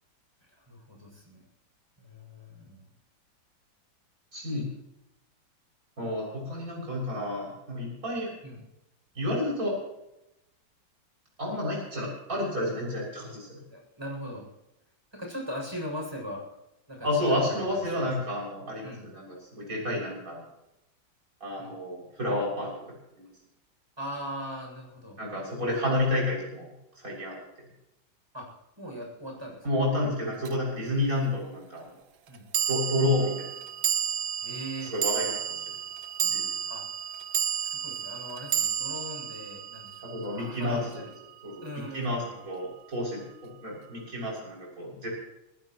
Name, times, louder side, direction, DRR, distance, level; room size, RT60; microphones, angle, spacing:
voice 1, 0.5-1.5 2.0-2.9 4.4-4.5 8.4-8.6 13.7-14.5 15.1-16.5 16.9-18.3 18.8-19.1 21.6-21.8 24.0-25.2 28.3-29.7 32.3-32.5 34.4-34.9 36.7-36.9 37.6-41.1 41.6-42.3, equal, 10° right, -1 dB, 7.5 m, -40 dB
voice 2, 4.3-4.7 6.0-8.3 9.2-9.8 11.4-13.5 17.0-19.3 19.5-20.4 21.4-22.7 23.2-23.3 25.2-26.7 27.0-27.4 29.6-31.9 32.7-33.5 34.9-35.4 36.2-36.4 40.1-41.0 41.4-41.6 41.9-45.1, left 1 dB, 45° right, -4 dB, 7.5 m, -30 dB
sound 1, 30.4-30.5 32.5-41.0, right 9 dB, 65° right, 1.4 m, -31 dB
25.5 x 16.5 x 3.2 m, 0.90 s
omnidirectional pair, 2.1 m